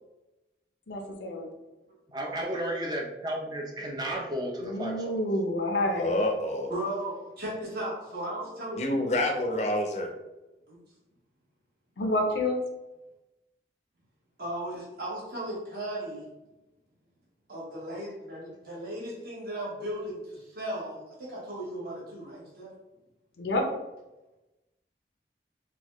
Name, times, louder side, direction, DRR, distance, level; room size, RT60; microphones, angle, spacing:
voice 1, 0.9-1.5 4.6-6.2 12.0-12.6 23.4-23.7, left 1 dB, 85° left, 3 dB, 0.6 m, -28 dB
voice 2, 2.1-5.2, right 1 dB, 25° right, 0 dB, 0.5 m, -33 dB
voice 3, 6.0-6.7 8.8-10.1, left 1 dB, 40° left, 3 dB, 0.5 m, -27 dB
voice 4, 6.7-8.8 10.7-10.8 14.4-16.3 17.5-22.7, right 1 dB, 55° right, -6 dB, 1.3 m, -36 dB
4.0 x 2.2 x 2.9 m, 1.0 s
head